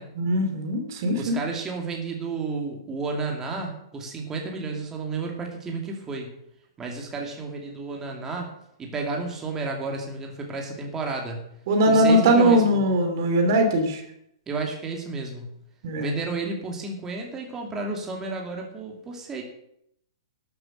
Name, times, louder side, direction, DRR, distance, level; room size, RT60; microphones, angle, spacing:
voice 1, 0.2-1.4 11.7-14.0 15.8-16.1, right 1 dB, 50° right, 5 dB, 2.6 m, -20 dB
voice 2, 1.1-6.3 6.8-8.5 8.8-11.4 11.8-12.8 14.5-15.5 16.0-19.4, right 3 dB, 15° right, 1 dB, 2.5 m, -32 dB
12.5 x 7.9 x 6.4 m, 0.73 s
figure-of-eight pair, 110°, 2 cm